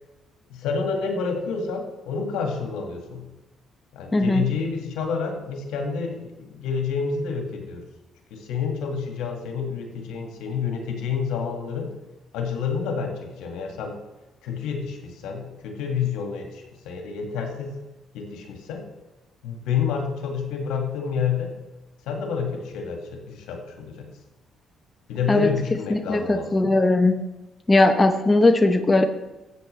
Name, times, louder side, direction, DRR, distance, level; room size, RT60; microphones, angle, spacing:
voice 1, 0.5-3.2 3.9-7.8 8.3-11.9 12.3-14.0 14.4-17.8 18.1-18.8 19.4-21.5 22.1-24.1 25.1-26.7, left 6 dB, 90° left, 2 dB, 1.9 m, -29 dB
voice 2, 4.1-4.4 25.3-25.5 25.9-27.3 27.7-29.0, left 2 dB, 20° left, 6 dB, 0.9 m, -19 dB
13.5 x 8.2 x 3.3 m, 1.1 s
cardioid pair, 85°, 0 cm